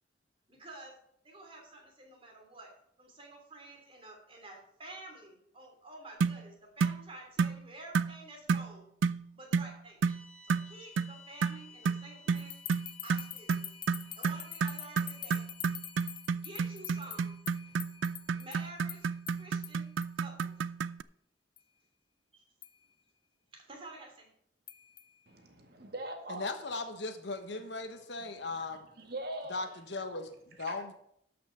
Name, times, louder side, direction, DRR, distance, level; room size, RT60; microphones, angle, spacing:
voice 1, 0.5-1.0 1.2-8.9 9.3-10.1 10.4-12.6 13.0-13.7 14.2-15.5 16.3-17.3 17.6-17.7 18.3-19.9 20.2-20.6 22.3-22.4 23.5-24.3, right 2 dB, 30° right, 1 dB, 2.8 m, -50 dB
sound 1, 6.2-6.4 6.8-7.0 7.4-7.6 7.9-8.1 8.5-8.7 9.0-9.2 9.5-9.7 10.0-10.2 10.5-10.7 11.0-11.1 11.4-21.0, right 5 dB, 80° right, 0.4 m, -31 dB
sound 2, 10.0-18.3, left 5 dB, 5° left, 2.6 m, -58 dB
sound 3, 12.3-20.1 20.4-20.5 21.6-21.7 22.6-22.8 24.7-25.1, left 10 dB, 25° left, 0.5 m, -46 dB
voice 2, 25.3-26.5 29.0-29.6 30.7-30.8, right 1 dB, 55° right, 3 dB, 1.9 m, -41 dB
voice 3, 26.3-28.8 29.5-30.9, left 3 dB, 65° left, 8 dB, 1.2 m, -38 dB
12.5 x 5.9 x 5.7 m, 0.72 s
head